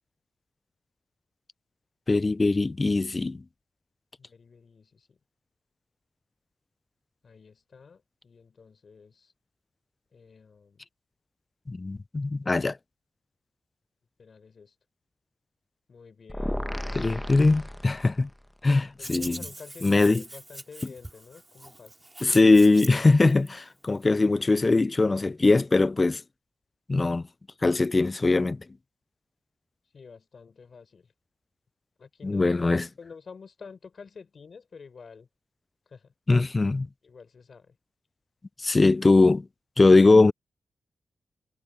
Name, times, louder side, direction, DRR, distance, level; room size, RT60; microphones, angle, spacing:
voice 1, 2.1-3.4 11.7-12.8 17.0-18.3 18.6-19.4 19.8-20.2 22.2-26.2 26.9-27.2 27.6-28.6 32.2-32.9 36.3-36.9 38.6-39.5 39.8-40.3, left 3 dB, 35° left, 0.3 m, -21 dB
voice 2, 4.2-5.2 7.2-9.3 10.1-10.8 14.2-14.7 15.9-17.5 19.0-22.0 29.9-31.1 32.0-32.7 33.0-35.3 35.9-36.1 37.0-37.8, left 5 dB, 60° left, 4.3 m, -49 dB
sound 1, 16.3-18.4, left 1 dB, 5° left, 0.9 m, -34 dB
Hands, 19.0-23.5, right 1 dB, 15° right, 3.7 m, -42 dB
cardioid pair, 60°, 0 cm